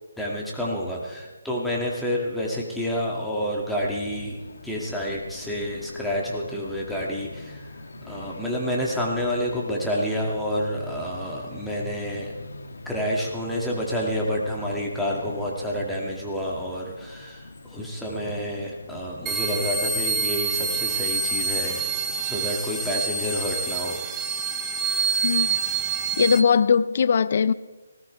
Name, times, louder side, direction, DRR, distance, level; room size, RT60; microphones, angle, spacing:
voice 1, 0.2-7.7 8.0-12.3 12.9-21.9 22.2-24.1, equal, ahead, 2.2 m, -29 dB
sound 1, 3.8-22.5, left 2 dB, 70° left, 1.7 m, -43 dB
sound 2, 19.3-26.4, right 5 dB, 15° right, 0.9 m, -27 dB
voice 2, 26.2-27.5, left 6 dB, 50° left, 0.6 m, -20 dB
19.5 x 17.5 x 3.4 m
figure-of-eight pair, 150°, 0 cm